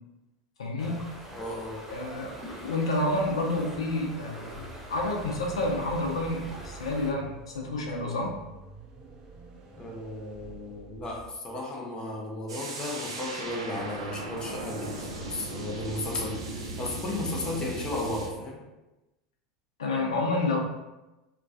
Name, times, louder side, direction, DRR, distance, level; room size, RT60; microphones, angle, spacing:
voice 1, 0.6-1.0 1.9-2.3 2.6-4.5 4.9-8.4 17.4-17.5 19.8-20.6, left 2 dB, 80° left, -1 dB, 0.5 m, -29 dB
sound 1, 0.8-7.1, right 1 dB, 15° right, 0.9 m, -43 dB
voice 2, 1.3-1.8 9.8-18.6, left 2 dB, 25° left, -2 dB, 0.5 m, -35 dB
sound 2, 4.5-11.3, right 4 dB, 35° right, 0.5 m, -47 dB
sound 3, 12.5-18.3, right 2 dB, 80° right, 0.6 m, -37 dB
2.2 x 2.2 x 2.5 m, 1.0 s
figure-of-eight pair, 80°, 3 cm